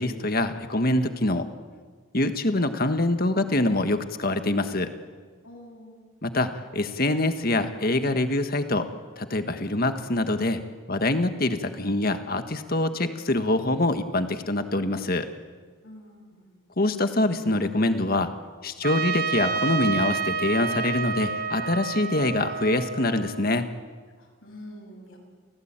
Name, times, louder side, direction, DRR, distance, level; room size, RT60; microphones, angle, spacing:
voice 1, 0.0-1.4 2.1-4.9 6.2-8.9 9.2-10.6 10.9-15.3 16.8-18.3 18.6-23.6, left 2 dB, 45° left, 8 dB, 1.6 m, -25 dB
voice 2, 5.4-6.0 15.8-16.5 24.2-25.2, left 1 dB, 70° left, 0 dB, 7.8 m, -46 dB
Trumpet, 18.8-23.7, right 5 dB, 45° right, 1.1 m, -29 dB
29.5 x 17.5 x 9.0 m, 1.5 s
head